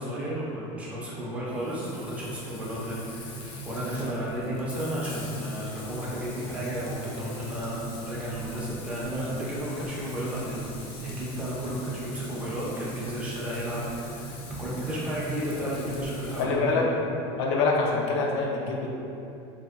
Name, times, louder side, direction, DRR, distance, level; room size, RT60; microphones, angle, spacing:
voice 1, 0.0-16.9, equal, 10° right, -7 dB, 0.5 m, -33 dB
Frying (food), 1.5-16.4, equal, 35° left, 0.5 m, -39 dB
voice 2, 16.4-16.9 17.4-18.9, left 4 dB, 85° left, -2 dB, 0.5 m, -25 dB
2.8 x 2.7 x 3.4 m, 2.8 s
cardioid pair, 170°, 14 cm